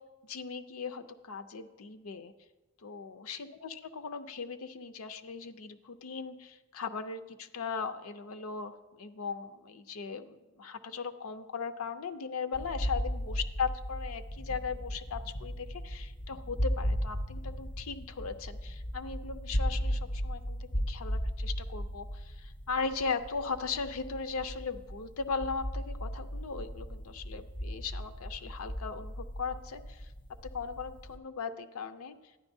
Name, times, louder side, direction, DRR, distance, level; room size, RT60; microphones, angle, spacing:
voice 1, 0.2-2.3 2.8-30.1 30.4-32.2, left 5 dB, 80° left, 9 dB, 0.5 m, -38 dB
sound 1, 12.5-31.2, equal, 20° left, 0.4 m, -36 dB
11.5 x 9.8 x 2.7 m, 1.1 s
head